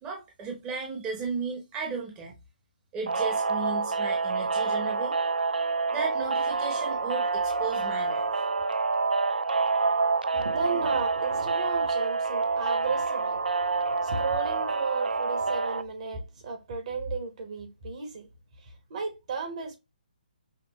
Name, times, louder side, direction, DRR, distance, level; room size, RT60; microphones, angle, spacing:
voice 1, 0.0-2.4 2.9-5.2 5.9-8.3, right 4 dB, 20° right, 0.9 m, -35 dB
sound 1, 3.1-15.8, right 4 dB, 85° right, 0.4 m, -27 dB
voice 2, 10.3-13.4 13.7-18.3 18.9-19.8, right 4 dB, 50° right, 1.3 m, -34 dB
5.7 x 2.1 x 3.0 m
figure-of-eight pair, 145°, 5 cm